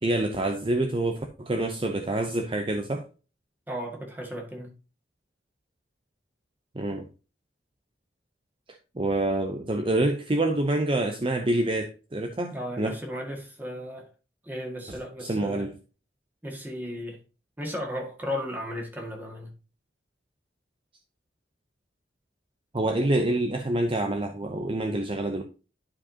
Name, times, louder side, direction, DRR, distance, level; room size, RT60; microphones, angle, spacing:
voice 1, 0.0-3.1 6.7-7.1 9.0-12.9 14.9-15.7 22.7-25.4, right 1 dB, 30° right, 0.7 m, -27 dB
voice 2, 3.7-4.7 12.5-14.1 14.4-15.7 16.4-17.2 17.6-19.5, equal, 10° right, 1.8 m, -35 dB
11.5 x 4.9 x 2.8 m
head